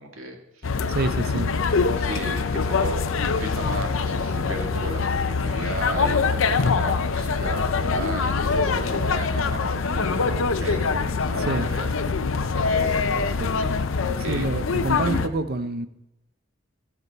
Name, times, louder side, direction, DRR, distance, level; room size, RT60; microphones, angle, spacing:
voice 1, 0.0-1.0 2.0-11.9 12.7-13.3 13.6-13.7 14.2-14.5 15.0-15.2, right 2 dB, 75° right, 2.0 m, -35 dB
sound 1, 0.6-15.3, left 4 dB, 70° left, 0.6 m, -24 dB
voice 2, 0.9-1.5 11.4-11.7 13.4-13.5 14.2-15.9, right 2 dB, 50° right, 0.7 m, -27 dB
sound 2, 1.1-7.5, left 6 dB, 50° left, 1.6 m, -39 dB
16.0 x 7.4 x 4.1 m
head